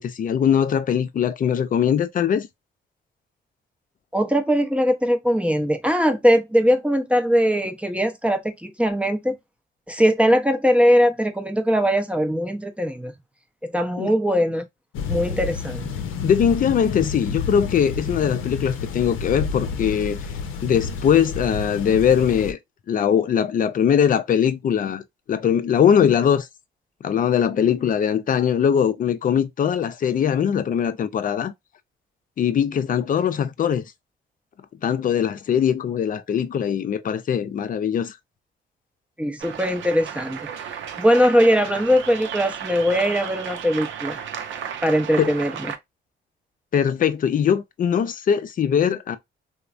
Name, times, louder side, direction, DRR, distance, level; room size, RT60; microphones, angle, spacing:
voice 1, 0.0-2.5 14.0-14.1 16.2-20.2 20.6-22.6 22.9-25.0 25.3-26.5 27.0-31.5 32.4-33.9 34.8-38.2 45.2-45.3 46.7-49.2, left 8 dB, 45° left, 0.5 m, -21 dB
voice 2, 4.1-9.4 9.9-13.1 13.6-14.6 15.1-15.9 39.2-40.4 41.0-44.2 44.8-45.7, equal, 5° right, 0.6 m, -20 dB
sound 1, 14.9-22.5, left 5 dB, 85° left, 0.6 m, -30 dB
sound 2, 39.4-45.8, right 8 dB, 75° right, 0.5 m, -34 dB
3.1 x 2.1 x 2.4 m
cardioid pair, 90°, 20 cm